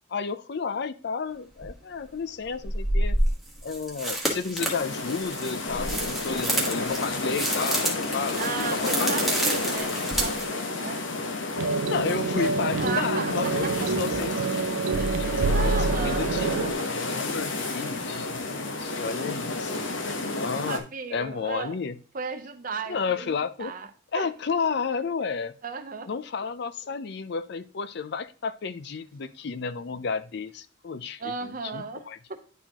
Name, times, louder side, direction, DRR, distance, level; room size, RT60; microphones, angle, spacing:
voice 1, 0.1-3.2 3.6-8.5 8.8-9.1 11.9-14.3 15.2-19.9 20.4-20.8 21.1-22.0 22.9-23.7 24.1-25.5 26.1-32.2, left 5 dB, 60° left, 13 dB, 0.5 m, -32 dB
sound 1, 1.6-1.7 2.6-10.4, right 1 dB, ahead, 1.4 m, -29 dB
sound 2, 4.6-20.8, left 2 dB, 75° left, 1.1 m, -31 dB
voice 2, 8.4-11.0 12.8-13.7 14.9-16.3 16.8-16.9 20.0-20.2 20.7-21.8 22.1-23.9 24.1-24.3 25.6-26.1 31.2-32.0 32.3-32.4, right 4 dB, 45° right, 7 dB, 0.8 m, -35 dB
sound 3, 11.6-16.7, right 4 dB, 85° right, 0.4 m, -27 dB
10.0 x 4.5 x 2.9 m, 0.37 s
head